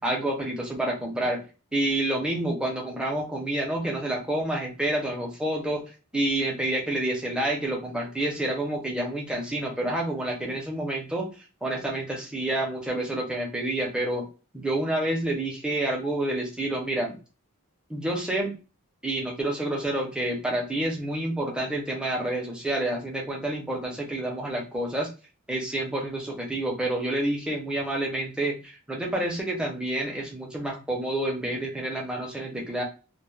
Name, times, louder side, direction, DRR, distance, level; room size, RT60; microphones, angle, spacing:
voice 1, 0.0-1.4 1.7-11.3 11.6-14.3 14.5-17.2 17.9-18.5 19.0-25.1 25.5-32.8, right 1 dB, 5° right, -1 dB, 0.5 m, -28 dB
2.2 x 2.0 x 3.1 m, 0.33 s
head